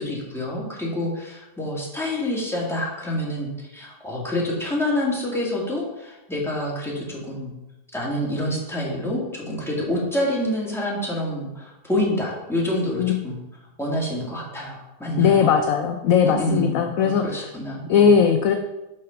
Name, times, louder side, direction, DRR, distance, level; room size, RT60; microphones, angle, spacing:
voice 1, 0.0-7.5 7.9-13.4 13.8-15.5 16.2-18.1, left 1 dB, ahead, -5 dB, 2.0 m, -27 dB
voice 2, 15.2-17.5 17.9-18.6, left 7 dB, 65° left, 6 dB, 0.9 m, -18 dB
6.4 x 5.9 x 5.8 m, 0.97 s
omnidirectional pair, 1.8 m